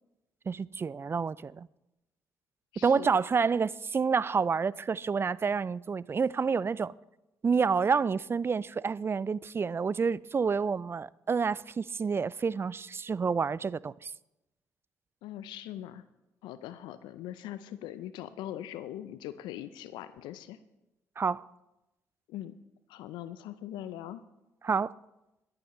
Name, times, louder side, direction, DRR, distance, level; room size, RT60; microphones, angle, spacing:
voice 1, 0.5-1.7 2.8-6.9 7.4-14.1 21.2-21.5 24.6-24.9, right 5 dB, 30° right, 0.3 m, -28 dB
voice 2, 2.7-3.1 15.2-16.0 16.4-20.6 22.3-22.6 22.9-24.2, left 12 dB, 70° left, 0.5 m, -41 dB
22.5 x 8.7 x 3.1 m
hypercardioid pair, 50°, 8 cm